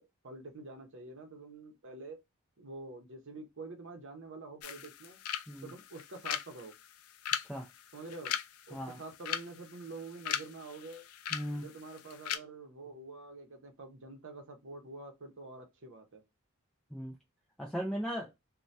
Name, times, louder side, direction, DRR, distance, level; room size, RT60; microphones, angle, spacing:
voice 1, 0.0-2.2 2.6-5.2 5.6-6.7 7.9-8.4 8.7-11.0 11.6-16.2, right 3 dB, 60° right, 0.7 m, -47 dB
sound 1, 4.6-12.4, left 10 dB, 70° left, 0.3 m, -40 dB
voice 2, 11.3-11.6 16.9-17.1 17.6-18.3, equal, ahead, 0.4 m, -37 dB
2.7 x 2.2 x 3.2 m
head